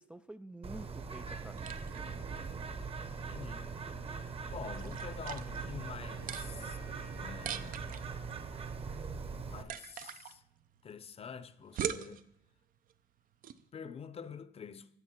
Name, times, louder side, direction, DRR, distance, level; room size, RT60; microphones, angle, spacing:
voice 1, 0.0-2.3, right 1 dB, 5° right, 0.4 m, -50 dB
Bird, 0.6-9.6, right 5 dB, 35° right, 1.1 m, -41 dB
sound 1, 1.5-13.7, right 9 dB, 55° right, 0.7 m, -45 dB
voice 2, 3.1-3.7 4.5-6.8 7.2-8.0 9.5-10.4 10.8-12.2 13.7-14.9, left 6 dB, 35° left, 0.7 m, -47 dB
Wind instrument woodwind instrument, 5.0-8.4, right 3 dB, 85° right, 2.2 m, -58 dB
14.5 x 8.6 x 4.5 m
cardioid pair, 110°, 17 cm